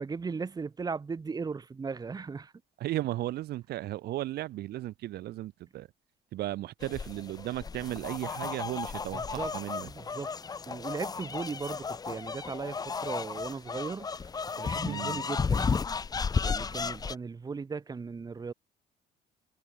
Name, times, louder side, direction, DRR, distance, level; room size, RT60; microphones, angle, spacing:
voice 1, 0.0-2.5 9.1-9.5 9.8-10.3 10.7-14.3 14.6-15.7 16.4-18.5, right 5 dB, 25° right, 1.1 m, -37 dB
voice 2, 2.8-5.9 6.3-9.9 14.8-15.2, right 15 dB, 70° right, 1.5 m, -35 dB
sound 1, 6.8-17.2, left 5 dB, 20° left, 0.6 m, -34 dB
cardioid pair, 110°, 17 cm